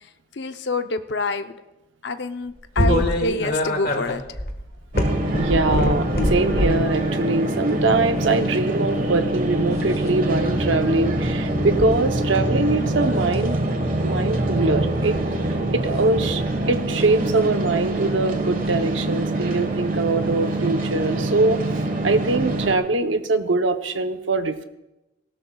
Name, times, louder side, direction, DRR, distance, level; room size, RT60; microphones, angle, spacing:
voice 1, 0.3-1.5 2.0-4.2 11.5-11.8 12.4-12.5 15.6-15.7 22.1-22.3, left 3 dB, 65° left, 9 dB, 0.7 m, -27 dB
sound 1, 2.8-6.9 7.6-7.9 9.7-10.1 11.8-11.9 12.4-12.8 13.2-13.5 14.9-15.3 16.9-17.1 18.6-18.8 20.3-20.4 21.0-21.1, left 1 dB, 50° left, 1.5 m, -24 dB
voice 2, 2.8-3.2 5.4-13.6 14.0-15.2 15.7-21.6 22.0-24.6, right 3 dB, 80° right, 8 dB, 0.8 m, -23 dB
sound 2, 4.9-22.7, right 1 dB, 45° right, 1.4 m, -25 dB
sound 3, 10.3-16.6, right 1 dB, 10° right, 1.6 m, -30 dB
18.0 x 16.5 x 2.3 m, 0.98 s
head